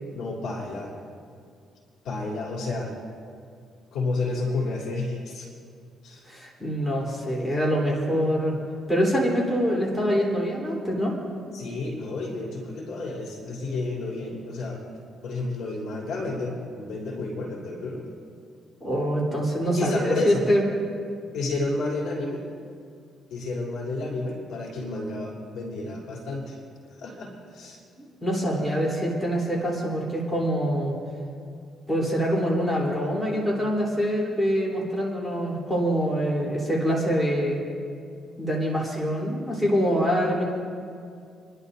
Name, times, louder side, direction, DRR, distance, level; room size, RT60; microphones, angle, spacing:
voice 1, 0.1-0.9 2.0-2.9 3.9-5.5 6.0-6.2 11.5-14.8 15.2-18.0 19.7-20.5 21.3-22.4 23.3-26.6 27.0-27.8, left 2 dB, 80° left, -3 dB, 3.3 m, -31 dB
voice 2, 6.3-8.6 8.9-11.1 18.8-20.6 28.0-31.0 31.9-37.6 38.4-40.4, equal, 10° left, -4 dB, 3.7 m, -25 dB
29.0 x 11.5 x 2.7 m, 2.3 s
cardioid pair, 90°, 0 cm